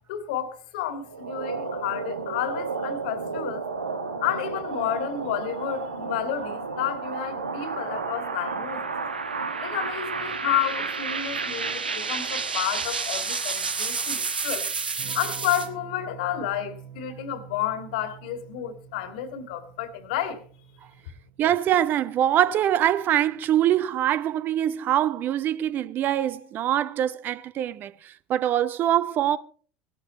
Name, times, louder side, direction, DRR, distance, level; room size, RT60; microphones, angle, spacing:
voice 1, 0.1-3.6 4.2-8.8 9.6-14.7 15.1-20.4, left 10 dB, 60° left, 1.9 m, -31 dB
sound 1, 1.1-15.7, right 4 dB, 80° right, 1.3 m, -31 dB
Electric guitar / Strum, 15.0-23.3, right 8 dB, 55° right, 4.1 m, -46 dB
voice 2, 21.4-29.4, right 11 dB, 40° right, 0.7 m, -24 dB
17.5 x 11.5 x 4.1 m
figure-of-eight pair, 70°, 5 cm